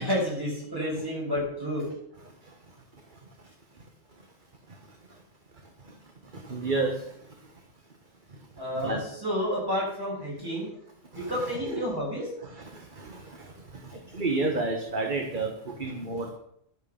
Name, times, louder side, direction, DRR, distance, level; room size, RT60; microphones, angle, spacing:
voice 1, 0.0-1.8 8.6-10.7 11.1-12.3 15.9-16.0, equal, 15° right, -5 dB, 7.4 m, -30 dB
voice 2, 6.5-6.9 8.8-9.0 14.2-15.5 15.8-16.3, right 3 dB, 40° right, 2 dB, 1.7 m, -28 dB
12.0 x 9.0 x 7.3 m, 0.73 s
omnidirectional pair, 1.3 m